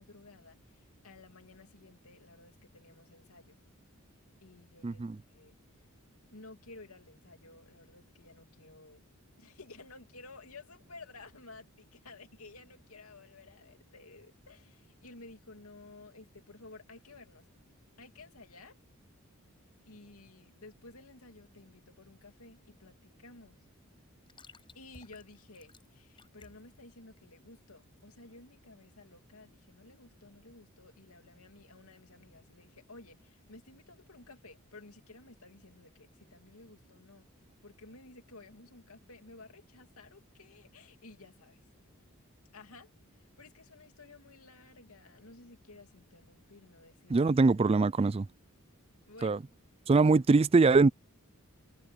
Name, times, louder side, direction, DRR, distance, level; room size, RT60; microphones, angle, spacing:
voice 1, 0.0-3.6 4.4-5.0 5.3-5.6 6.3-9.0 9.4-17.5 18.0-18.8 19.9-23.6 24.7-37.2 37.6-41.6 42.5-47.3 49.1-49.4, left 3 dB, 85° left, 2.8 m, -54 dB
voice 2, 4.8-5.2 47.1-48.3 49.2-49.4 49.9-50.9, right 3 dB, 25° right, 0.4 m, -23 dB
sound 1, 22.4-28.4, left 3 dB, 25° left, 6.1 m, -60 dB
head